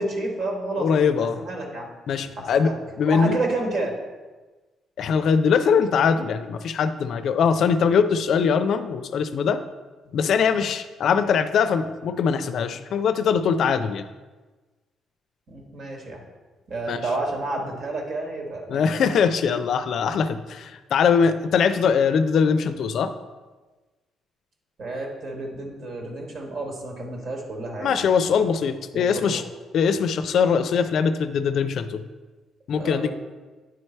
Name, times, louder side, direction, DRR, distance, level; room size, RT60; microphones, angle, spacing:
voice 1, 0.0-0.9 1.2-1.9 2.4-2.7 3.1-3.9 15.5-16.2 16.7-19.1 24.8-28.0 28.9-29.4 32.8-33.1, right 2 dB, 60° right, 1 dB, 1.5 m, -30 dB
voice 2, 0.8-1.4 2.1-3.4 5.0-9.6 10.1-14.0 16.9-17.0 18.7-23.1 27.8-29.4 29.7-32.0 32.7-33.1, left 6 dB, 70° left, 10 dB, 0.4 m, -22 dB
9.5 x 3.3 x 4.4 m, 1.3 s
cardioid pair, 90°, 0 cm